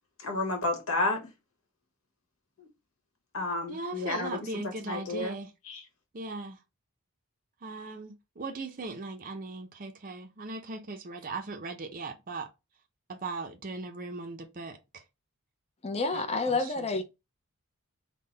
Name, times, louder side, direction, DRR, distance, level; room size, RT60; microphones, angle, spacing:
voice 1, 0.2-1.2 3.3-4.3 4.9-5.3 5.7-5.8, left 2 dB, 65° left, 1.4 m, -30 dB
voice 2, 3.7-5.5 6.1-6.6 7.6-12.5 13.1-15.0 16.1-16.9, right 3 dB, 40° right, 0.6 m, -39 dB
voice 3, 15.8-17.0, left 3 dB, 30° left, 0.6 m, -29 dB
3.8 x 2.2 x 3.9 m
head